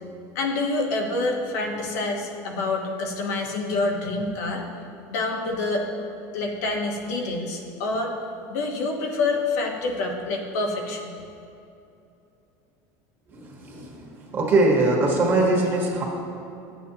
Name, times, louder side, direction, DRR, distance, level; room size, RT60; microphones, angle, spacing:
voice 1, 0.3-4.6 5.1-5.8 6.3-8.1 8.5-11.2, left 3 dB, 90° left, 1 dB, 1.2 m, -27 dB
voice 2, 13.3-16.0, right 2 dB, 25° right, -1 dB, 1.4 m, -22 dB
11.5 x 8.4 x 2.9 m, 2.6 s
cardioid pair, 160°, 9 cm